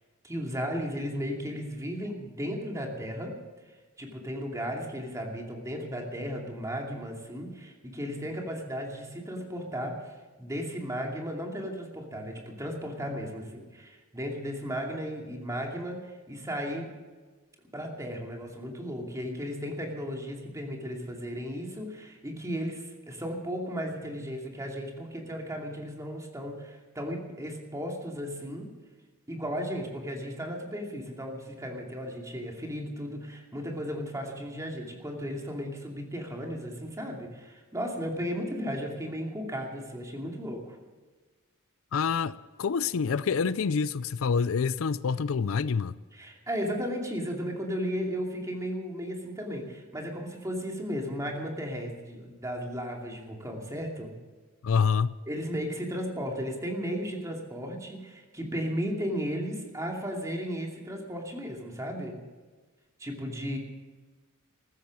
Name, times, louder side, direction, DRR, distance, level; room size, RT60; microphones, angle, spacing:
voice 1, 0.2-3.3 4.0-16.9 17.7-28.7 29.3-40.8 46.1-54.1 55.3-62.2 63.0-63.6, equal, 15° right, 2.6 m, -35 dB
voice 2, 41.9-46.0 54.6-55.2, left 5 dB, 70° left, 0.5 m, -27 dB
15.0 x 14.0 x 6.3 m
head